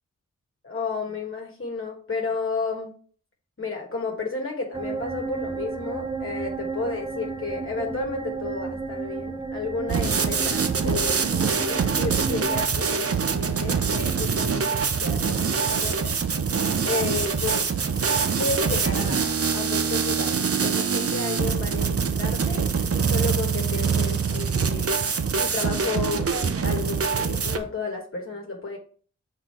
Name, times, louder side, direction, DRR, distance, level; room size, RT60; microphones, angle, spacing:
voice 1, 0.6-2.9 3.6-16.1 16.8-17.7 18.4-25.0 25.4-28.8, left 4 dB, 45° left, 0 dB, 1.4 m, -32 dB
sound 1, 4.7-12.7, right 4 dB, 15° right, 0.8 m, -33 dB
sound 2, 9.9-27.6, right 6 dB, 50° right, 0.8 m, -24 dB
6.2 x 4.0 x 4.4 m, 0.43 s
wide cardioid pair, 75°, 30 cm